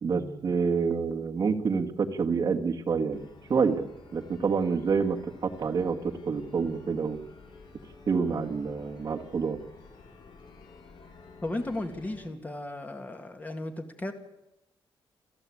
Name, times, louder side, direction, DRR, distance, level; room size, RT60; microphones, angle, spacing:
voice 1, 0.0-7.2 8.1-9.6, right 5 dB, 40° right, 2 dB, 1.8 m, -28 dB
sound 1, 3.1-12.3, left 4 dB, 60° left, 4.9 m, -51 dB
voice 2, 11.4-14.1, left 1 dB, 15° left, 6 dB, 2.0 m, -35 dB
29.0 x 13.0 x 8.6 m, 0.92 s
wide cardioid pair, 170°, 9 cm